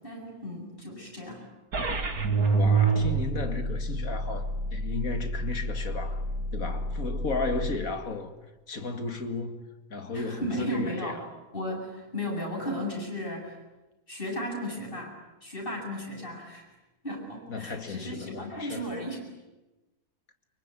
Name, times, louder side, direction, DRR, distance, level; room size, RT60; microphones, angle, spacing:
voice 1, 0.0-1.5 10.1-11.2 11.5-13.6 14.1-16.7 17.0-19.3, equal, 35° left, 8.2 m, -35 dB
sound 1, 1.7-7.8, right 3 dB, 65° right, 2.7 m, -28 dB
voice 2, 2.5-6.3 6.5-8.3 8.7-9.6 9.9-11.3 17.5-18.9, left 3 dB, 60° left, 2.6 m, -34 dB
25.0 x 23.5 x 9.9 m
omnidirectional pair, 1.7 m